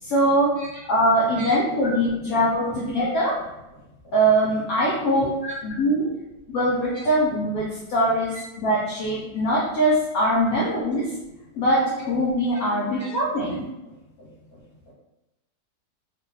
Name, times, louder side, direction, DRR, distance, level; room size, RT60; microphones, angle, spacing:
voice 1, 0.0-0.5 0.9-3.4 4.1-5.3 5.6-6.1 6.5-11.1 11.6-13.6, right 1 dB, 70° left, -5 dB, 0.9 m, -22 dB
voice 2, 5.2-5.6 6.9-7.0 10.9-11.0 13.0-13.1, right 1 dB, 15° right, -9 dB, 0.6 m, -36 dB
2.8 x 2.2 x 3.1 m, 0.97 s
omnidirectional pair, 1.8 m